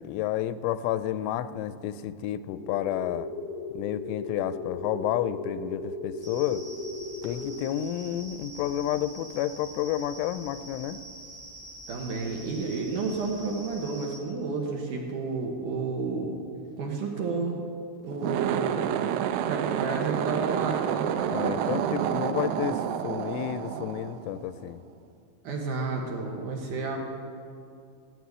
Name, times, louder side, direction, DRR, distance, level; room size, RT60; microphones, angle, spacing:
voice 1, 0.0-3.3 3.7-6.6 7.2-11.0 21.3-24.8, left 11 dB, 90° left, 13 dB, 3.1 m, -30 dB
sound 1, 2.5-7.5, left 3 dB, 15° left, 1.7 m, -37 dB
sound 2, 6.2-14.2, right 1 dB, 5° right, 1.2 m, -45 dB
voice 2, 11.9-16.4 16.8-17.6 18.0-18.9 19.5-21.1 25.4-27.0, right 4 dB, 70° right, 1 dB, 2.0 m, -31 dB
sound 3, 18.1-24.6, right 9 dB, 90° right, 3.2 m, -29 dB
15.5 x 7.9 x 9.3 m, 2.4 s
omnidirectional pair, 5.4 m